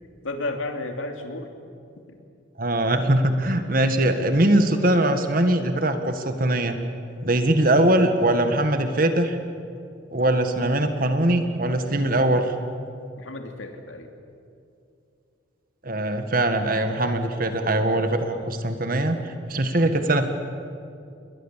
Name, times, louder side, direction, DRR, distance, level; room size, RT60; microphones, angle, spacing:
voice 1, 0.2-1.5 1.9-2.2 13.2-14.1 18.3-18.6 19.7-19.9, left 2 dB, 85° left, 4 dB, 2.7 m, -33 dB
voice 2, 2.6-6.8 7.2-9.4 10.1-12.5 15.8-20.3, right 1 dB, 45° right, 7 dB, 1.7 m, -21 dB
29.0 x 22.0 x 7.5 m, 2.5 s
head